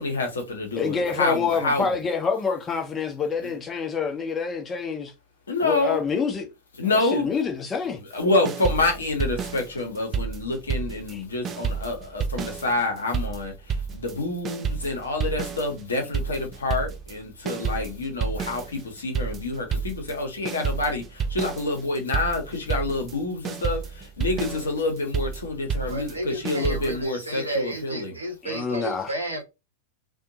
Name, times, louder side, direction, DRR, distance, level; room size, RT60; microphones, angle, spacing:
voice 1, 0.0-1.9 5.5-6.0 6.8-7.3 8.1-28.2, left 2 dB, 70° left, 0.9 m, -27 dB
voice 2, 0.7-5.1 5.6-6.5 6.8-8.0 11.1-11.2 28.4-29.1, left 5 dB, 20° left, 0.6 m, -27 dB
sound 1, 8.4-11.2 11.4-27.1, right 6 dB, 25° right, 0.3 m, -30 dB
voice 3, 25.9-29.4, right 2 dB, 80° right, 0.8 m, -32 dB
2.6 x 2.3 x 2.6 m
figure-of-eight pair, 90°, 0 cm